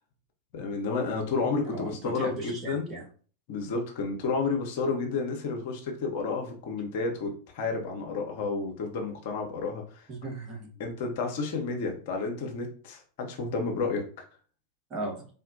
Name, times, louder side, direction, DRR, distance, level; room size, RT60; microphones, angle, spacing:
voice 1, 0.5-2.9 3.5-10.1 10.8-14.0, left 4 dB, 50° left, 2 dB, 0.7 m, -31 dB
voice 2, 1.6-3.1 10.1-10.7 14.9-15.3, right 2 dB, 30° right, 0 dB, 1.0 m, -37 dB
3.6 x 2.1 x 2.6 m, 0.40 s
figure-of-eight pair, 90°, 0 cm